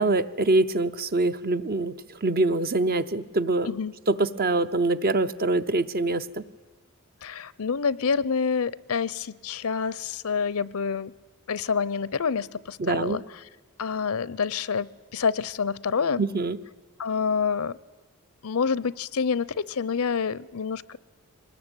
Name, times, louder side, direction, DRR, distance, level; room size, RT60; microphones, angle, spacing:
voice 1, 0.0-2.0 2.2-3.7 4.1-6.4 12.8-13.2 16.2-16.6, right 2 dB, 45° right, 12 dB, 0.8 m, -24 dB
voice 2, 7.2-11.1 11.5-13.4 13.8-16.2 17.0-17.8 18.4-21.0, left 5 dB, 70° left, 20 dB, 0.7 m, -27 dB
23.5 x 20.0 x 8.9 m, 1.4 s
head